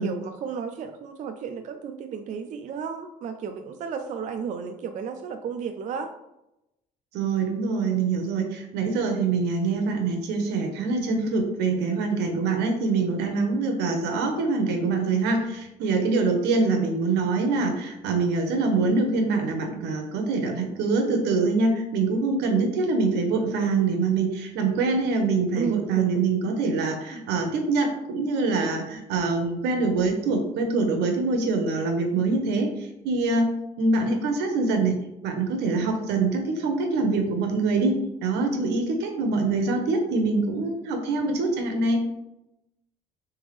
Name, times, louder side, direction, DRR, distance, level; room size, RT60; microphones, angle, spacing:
voice 1, 0.0-6.1 25.6-26.2, right 6 dB, 45° right, 6 dB, 0.4 m, -33 dB
voice 2, 7.1-33.5 33.8-35.0 35.2-42.0, right 3 dB, 85° right, 4 dB, 0.9 m, -24 dB
3.9 x 3.5 x 3.2 m, 0.88 s
cardioid pair, 110°, 17 cm